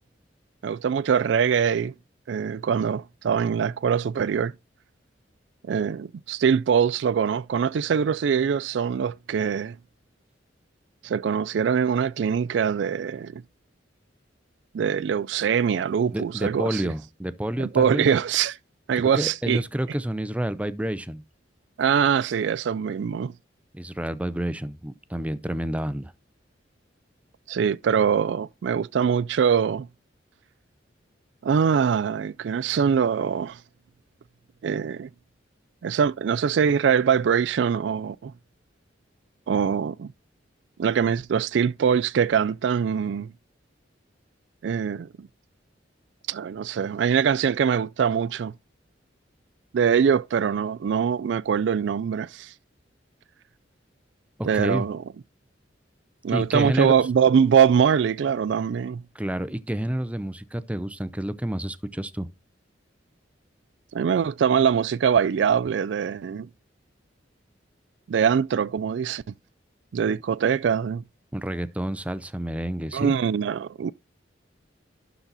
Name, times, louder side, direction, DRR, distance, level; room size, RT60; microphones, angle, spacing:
voice 1, 0.6-1.9 2.3-4.5 5.7-9.8 11.0-13.4 14.7-16.9 17.6-18.6 18.9-19.6 21.8-23.3 27.5-29.9 31.4-33.6 34.6-35.1 35.8-38.3 39.5-40.1 40.8-43.3 44.6-45.3 46.3-48.5 49.7-52.5 54.4-55.0 56.2-59.0 63.9-66.5 68.1-69.2 69.9-71.0 72.9-73.9, right 7 dB, 70° right, 0.3 m, -23 dB
voice 2, 16.1-18.1 19.1-21.2 23.7-26.1 54.4-54.9 56.3-57.1 59.1-62.3 71.3-73.1, right 1 dB, 5° right, 0.5 m, -29 dB
12.0 x 4.0 x 4.0 m
head